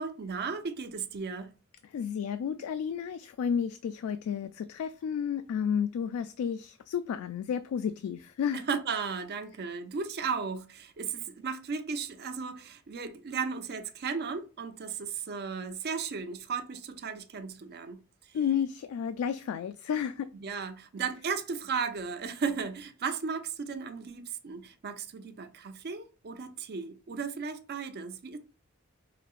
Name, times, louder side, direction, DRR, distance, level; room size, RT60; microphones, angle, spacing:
voice 1, 0.0-1.5 8.5-18.0 20.3-28.4, right 5 dB, 50° right, 0.5 m, -35 dB
voice 2, 1.9-8.6 18.3-20.3, left 7 dB, 85° left, 0.3 m, -32 dB
4.9 x 2.8 x 2.4 m
head